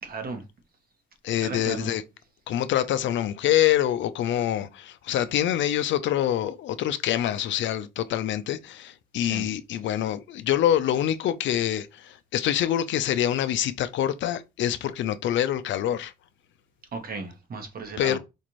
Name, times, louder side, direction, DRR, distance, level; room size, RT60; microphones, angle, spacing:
voice 1, 0.0-0.4 1.4-1.9 9.2-9.5 16.9-18.2, right 4 dB, 50° right, 1.2 m, -35 dB
voice 2, 1.2-2.0 2.5-16.1 18.0-18.2, left 11 dB, 70° left, 0.5 m, -25 dB
4.4 x 2.5 x 3.1 m
cardioid pair, 90°, 20 cm